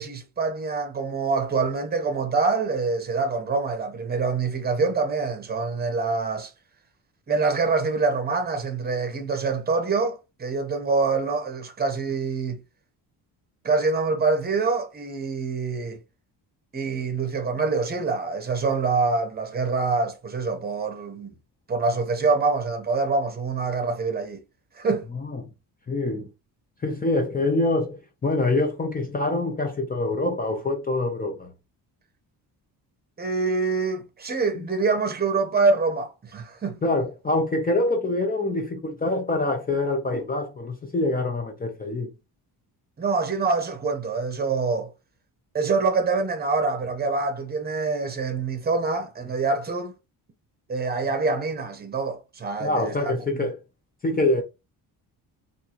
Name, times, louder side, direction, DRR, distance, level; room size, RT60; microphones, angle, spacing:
voice 1, 0.0-6.5 7.3-12.6 13.6-16.0 16.7-21.4 21.7-24.4 24.8-25.1 33.2-36.8 43.0-44.9 45.5-49.9 50.7-53.5, right 4 dB, 25° right, 0.8 m, -25 dB
voice 2, 25.9-26.3 26.8-31.5 34.6-34.7 36.8-42.1 52.6-53.6 54.0-54.4, left 2 dB, 20° left, 0.6 m, -25 dB
3.6 x 2.6 x 2.9 m
cardioid pair, 135°, 42 cm